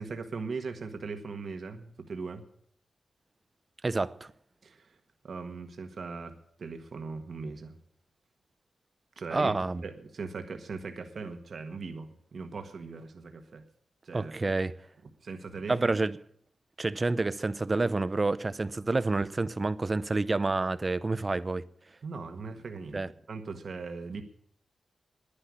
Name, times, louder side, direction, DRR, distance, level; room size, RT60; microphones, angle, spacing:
voice 1, 0.0-2.4 4.6-4.9 5.2-6.3 6.6-7.7 9.2-9.5 9.8-13.6 14.0-14.3 15.2-15.9 22.0-24.2, right 4 dB, 65° right, 1.5 m, -39 dB
voice 2, 3.8-4.3 9.3-9.8 14.1-14.7 15.7-16.2 16.8-21.6 22.9-23.1, right 3 dB, 35° right, 0.7 m, -28 dB
10.5 x 10.0 x 9.8 m
cardioid pair, 80°, 0 cm